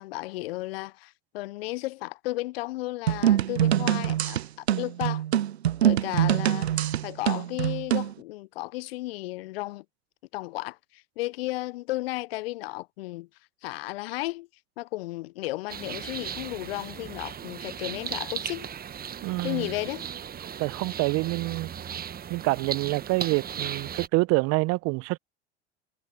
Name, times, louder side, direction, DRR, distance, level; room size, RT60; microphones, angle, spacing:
voice 1, 0.0-5.2 5.8-9.8 10.3-13.3 13.6-14.5 14.8-18.7 19.4-20.0, left 19 dB, 70° left, 0.8 m, -34 dB
sound 1, 3.1-8.1, right 11 dB, 90° right, 0.5 m, -24 dB
sound 2, 15.7-24.1, right 8 dB, 30° right, 1.4 m, -37 dB
voice 2, 19.2-19.7 20.6-21.7 22.3-25.2, right 24 dB, 55° right, 1.0 m, -26 dB
hypercardioid pair, 75°, 31 cm